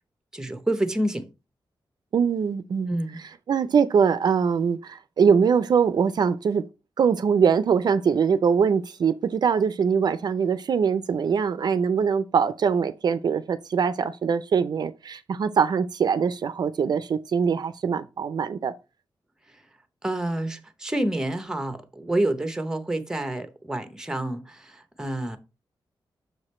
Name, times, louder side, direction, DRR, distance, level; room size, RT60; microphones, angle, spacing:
voice 1, 0.3-1.3 2.9-3.2 20.0-25.4, right 1 dB, 5° right, 0.7 m, -28 dB
voice 2, 2.1-3.0 3.5-6.6 7.0-18.7, right 6 dB, 55° right, 0.4 m, -22 dB
6.6 x 4.9 x 4.2 m
wide cardioid pair, 180°, 8 cm